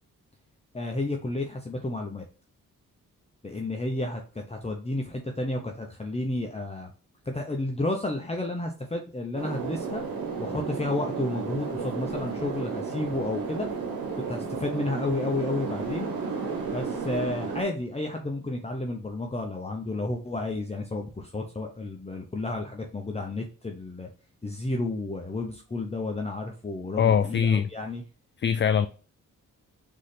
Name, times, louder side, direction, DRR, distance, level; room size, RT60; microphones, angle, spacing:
voice 1, 0.7-2.2 3.4-6.9 7.2-10.0 10.4-13.7 14.3-16.1 16.7-24.1 24.4-28.0, left 2 dB, 20° left, 0.8 m, -31 dB
sound 1, 9.3-17.6, right 5 dB, 85° right, 1.4 m, -33 dB
voice 2, 27.0-27.7 28.4-28.9, left 7 dB, 35° left, 0.4 m, -22 dB
4.0 x 3.7 x 3.4 m
supercardioid pair, 45°, 35 cm